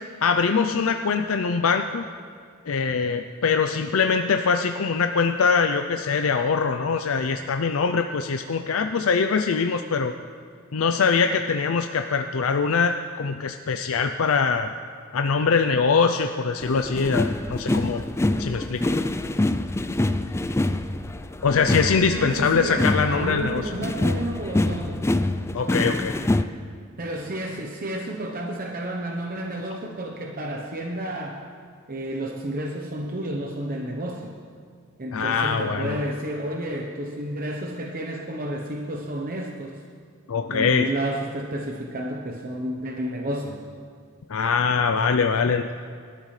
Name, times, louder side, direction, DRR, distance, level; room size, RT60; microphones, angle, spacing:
voice 1, 0.2-2.0 2.7-10.1 10.7-14.7 15.1-18.0 18.4-18.8 21.4-23.7 25.5-26.1 35.1-36.0 40.3-40.9 44.3-45.7, left 5 dB, 75° left, 6 dB, 0.5 m, -23 dB
sound 1, 16.6-26.4, left 1 dB, 15° left, 0.4 m, -25 dB
voice 2, 22.2-25.0 27.0-31.4 31.9-34.3 35.0-39.8 40.5-43.6, right 1 dB, 45° right, 0 dB, 0.9 m, -31 dB
24.5 x 12.5 x 3.3 m, 2.1 s
head